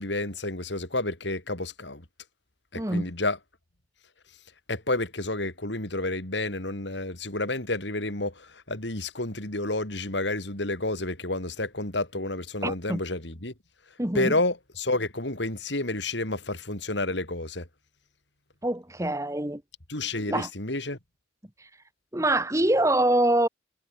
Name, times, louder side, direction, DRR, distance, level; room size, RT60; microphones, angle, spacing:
voice 1, 0.0-2.0 2.7-3.4 4.7-13.5 14.1-17.7 19.9-21.0, left 2 dB, 75° left, 4.0 m, -30 dB
voice 2, 2.7-3.1 12.6-13.0 14.0-14.4 18.6-19.6 20.3-20.5 21.6-21.7 22.1-23.5, right 1 dB, 15° right, 1.4 m, -24 dB
head